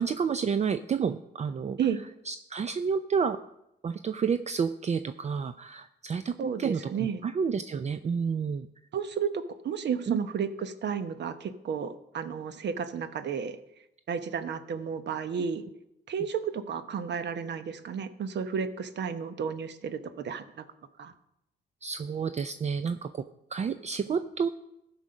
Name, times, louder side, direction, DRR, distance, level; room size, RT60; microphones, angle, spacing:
voice 1, 0.0-1.8 2.3-3.4 3.8-6.9 7.2-8.7 10.1-10.2 21.8-23.2 23.5-24.5, right 6 dB, 35° right, 11 dB, 0.5 m, -30 dB
voice 2, 6.4-7.2 8.9-13.6 14.1-15.6 16.1-20.6 21.0-21.1, right 7 dB, 60° right, 11 dB, 1.0 m, -32 dB
14.5 x 6.3 x 5.3 m, 0.85 s
cardioid pair, 90°, 20 cm